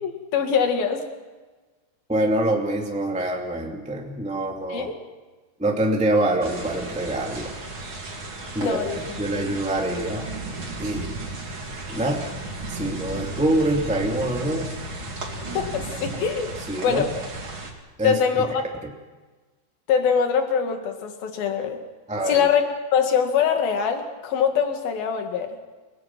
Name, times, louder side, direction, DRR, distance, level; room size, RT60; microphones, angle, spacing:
voice 1, 0.0-1.0 4.7-4.9 8.6-9.0 15.6-16.5 16.8-17.1 18.0-18.6 19.9-21.8 22.3-22.6 22.9-25.5, left 7 dB, 65° left, 5 dB, 3.8 m, -23 dB
voice 2, 2.1-4.9 5.6-7.5 8.5-10.3 10.8-11.2 11.5-12.3 12.7-14.7 16.7-17.1 18.0-18.4 22.1-22.5, right 1 dB, 5° right, 0 dB, 1.5 m, -25 dB
sound 1, 6.4-17.7, right 2 dB, 35° right, 3.3 m, -34 dB
29.5 x 18.5 x 6.0 m, 1.3 s
omnidirectional pair, 4.6 m